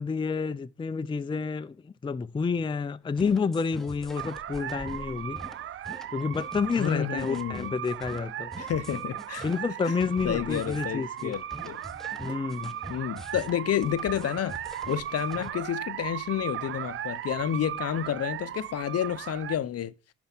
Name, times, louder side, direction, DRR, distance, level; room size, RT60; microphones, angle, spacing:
voice 1, 0.0-5.4 6.1-8.5 9.4-11.3 12.2-12.7, left 5 dB, 15° left, 0.4 m, -29 dB
sound 1, 3.2-15.5, equal, ahead, 1.0 m, -44 dB
sound 2, 4.1-19.6, right 11 dB, 45° right, 0.4 m, -37 dB
voice 2, 6.8-7.7 8.6-9.4 10.2-11.8 12.9-14.6 14.9-19.9, left 10 dB, 55° left, 0.7 m, -30 dB
sound 3, 8.1-15.1, equal, 15° right, 2.8 m, -59 dB
11.0 x 4.5 x 5.9 m
cardioid pair, 90°, 30 cm